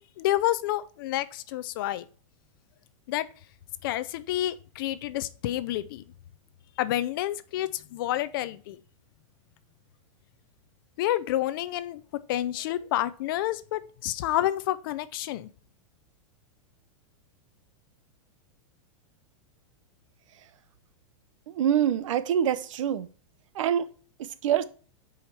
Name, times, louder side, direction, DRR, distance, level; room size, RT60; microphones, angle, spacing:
voice 1, 0.2-2.0 3.1-3.3 3.8-6.0 6.8-8.8 11.0-12.0 12.3-15.5, left 14 dB, 40° left, 0.5 m, -29 dB
voice 2, 21.5-23.1 23.6-23.9 24.2-24.6, right 9 dB, 70° right, 0.7 m, -25 dB
7.2 x 5.0 x 4.4 m
supercardioid pair, 170°, 17 cm